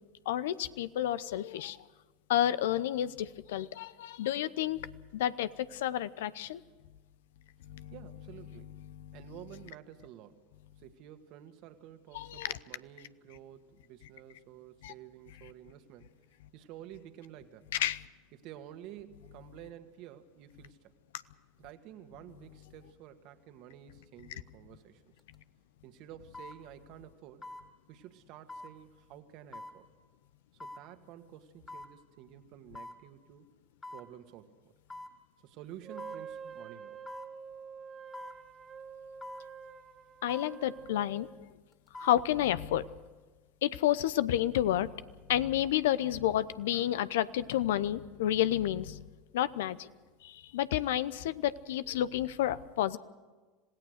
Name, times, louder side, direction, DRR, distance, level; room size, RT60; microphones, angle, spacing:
voice 1, 0.3-1.8 2.3-6.6 7.6-7.9 8.9-9.2 12.1-12.6 14.8-14.9 17.7-18.0 40.2-41.3 42.0-42.9 43.6-44.9 45.3-49.0 49.3-49.9 50.2-53.0, left 12 dB, 75° left, 16 dB, 0.7 m, -30 dB
voice 2, 7.9-8.7 9.1-10.4 10.8-16.1 16.5-17.7 18.3-20.9 21.6-25.0 25.8-27.4 27.9-29.9 30.5-33.5 33.9-34.7 35.4-37.1, right 11 dB, 55° right, 8 dB, 1.8 m, -51 dB
sound 1, 25.2-25.3 26.3-26.6 27.4-27.7 28.5-28.7 29.5-29.8 30.6-30.8 31.7-31.9 32.8-33.0 33.8-34.1 34.9-35.2 36.0-36.2 37.1-37.3 38.1-38.4 39.2-39.5 40.3-40.5 41.7-42.2 42.6-42.7, left 2 dB, 20° left, 2.8 m, -45 dB
Wind instrument woodwind instrument, 35.8-41.4, right 6 dB, 30° right, 1.2 m, -47 dB
26.5 x 17.0 x 6.6 m, 1.3 s
hypercardioid pair, 85°, 0 cm